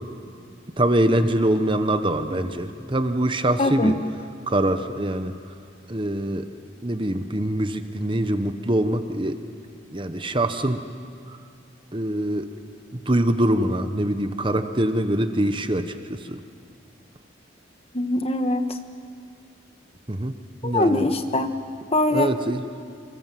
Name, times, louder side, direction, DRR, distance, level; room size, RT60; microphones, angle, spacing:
voice 1, 0.8-4.0 4.5-5.3 5.9-6.5 6.8-9.4 9.9-10.8 11.3-11.4 11.9-12.5 12.9-16.4 20.1-20.3 20.6-21.1 22.1-22.6, right 1 dB, 25° right, 8 dB, 1.1 m, -24 dB
voice 2, 3.6-3.9 17.9-18.6 20.6-21.5 21.9-22.3, left 1 dB, 30° left, 7 dB, 1.4 m, -22 dB
28.0 x 26.5 x 7.7 m, 2.2 s
head